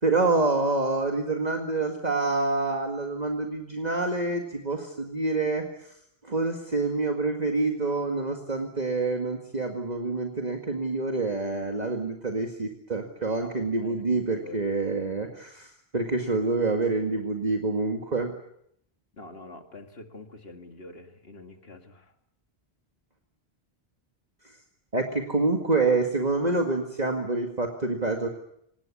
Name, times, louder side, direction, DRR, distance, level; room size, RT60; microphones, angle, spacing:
voice 1, 0.0-5.9 6.2-18.3 24.9-28.3, right 3 dB, 40° right, 3 dB, 2.1 m, -27 dB
voice 2, 13.8-14.6 19.2-22.1, left 2 dB, 70° left, 5 dB, 2.5 m, -46 dB
26.0 x 19.0 x 8.6 m, 0.74 s
omnidirectional pair, 1.1 m